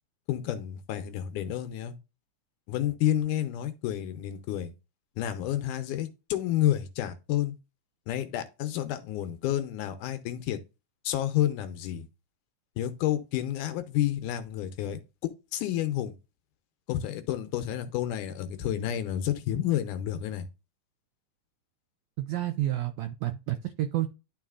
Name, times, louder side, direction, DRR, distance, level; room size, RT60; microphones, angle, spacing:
voice 1, 0.3-1.9 2.7-4.7 5.2-7.5 8.1-10.6 11.0-12.1 12.8-16.2 16.9-20.5, left 12 dB, 80° left, 2.1 m, -30 dB
voice 2, 22.2-24.1, right 14 dB, 85° right, 1.6 m, -30 dB
11.5 x 3.9 x 2.4 m
omnidirectional pair, 3.8 m